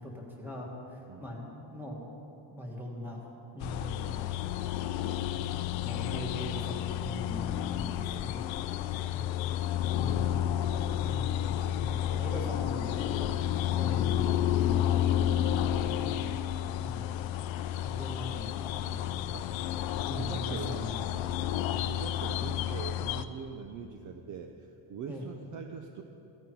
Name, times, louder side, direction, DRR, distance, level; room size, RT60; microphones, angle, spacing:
voice 1, 0.0-2.1 2.5-4.6 5.0-5.6 5.8-8.5 10.9-13.4 13.8-14.4 14.6-15.1 16.8-17.2 17.8-19.1 20.0-21.1 25.1-25.2, left 1 dB, 5° right, -2 dB, 1.8 m, -41 dB
sound 1, 3.6-23.2, left 11 dB, 70° left, 0.7 m, -31 dB
voice 2, 19.9-20.9 21.7-26.0, right 6 dB, 40° right, 5 dB, 0.6 m, -43 dB
15.5 x 13.5 x 4.7 m, 2.9 s
cardioid pair, 175°, 47 cm